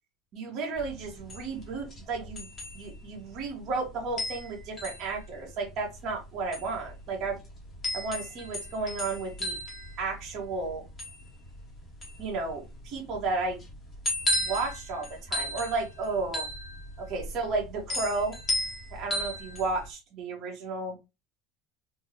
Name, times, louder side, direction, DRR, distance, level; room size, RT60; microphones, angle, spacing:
voice 1, 0.3-2.5 2.7-7.4 7.9-9.5 10.0-10.8 12.2-13.6 14.3-16.5 17.0-18.4 18.9-21.0, right 3 dB, 40° right, 0 dB, 1.3 m, -33 dB
sound 1, 0.7-19.9, left 1 dB, 20° left, 1.0 m, -36 dB
3.4 x 2.3 x 2.9 m, 0.25 s
cardioid pair, 175°, 0 cm